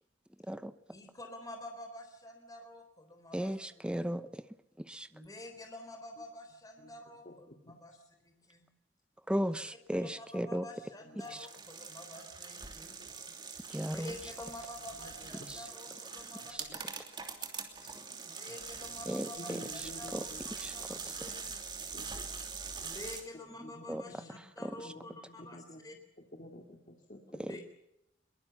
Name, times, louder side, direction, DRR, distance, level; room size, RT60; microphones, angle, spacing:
voice 1, 0.9-3.9 5.1-8.0 8.2-8.7 9.4-9.5 9.9-13.0 13.8-16.8 18.3-21.7 22.8-25.9 27.5-27.6, left 1 dB, 20° left, 4 dB, 3.7 m, -49 dB
voice 2, 3.3-4.5 4.8-5.1 9.3-10.7 11.3-11.5 13.7-14.1 15.5-15.6 16.5-16.6 19.1-19.6 20.1-20.3 20.6-21.0 23.6-24.0 24.6-24.9 27.4-27.6, equal, 5° right, 11 dB, 0.8 m, -36 dB
voice 3, 7.2-7.8 11.0-11.4 13.3-13.4 15.0-15.5 16.7-16.8 17.8-18.5 19.4-20.4 20.8-21.6 21.9-22.3 23.6-25.8 26.2-27.6, left 1 dB, 40° left, 3 dB, 2.3 m, -52 dB
sound 1, 11.2-23.2, right 5 dB, 25° right, 2.9 m, -43 dB
22.5 x 22.0 x 7.1 m, 0.82 s
head